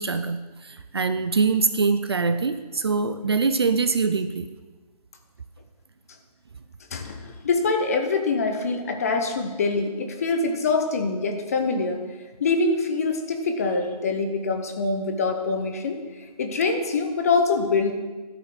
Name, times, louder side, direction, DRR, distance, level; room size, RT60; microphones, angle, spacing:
voice 1, 0.0-4.5, right 4 dB, 40° right, 10 dB, 0.5 m, -24 dB
voice 2, 6.9-12.0 12.4-17.9, left 3 dB, 20° left, 5 dB, 0.8 m, -24 dB
13.0 x 5.5 x 6.0 m, 1.3 s
figure-of-eight pair, 160°, 21 cm